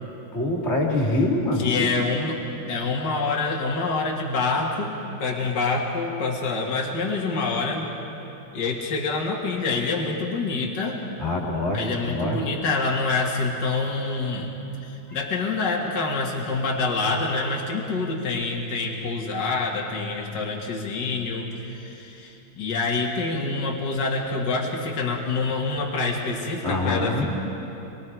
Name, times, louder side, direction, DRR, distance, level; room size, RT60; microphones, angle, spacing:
voice 1, 0.3-1.9 11.2-12.4 26.6-27.2, left 2 dB, 30° left, -2 dB, 3.1 m, -24 dB
voice 2, 1.6-2.4 2.7-4.9 5.2-7.9 8.5-11.0 11.7-14.5 14.8-27.2, left 3 dB, 55° left, -1 dB, 2.4 m, -26 dB
25.5 x 23.0 x 4.7 m, 2.9 s
omnidirectional pair, 2.3 m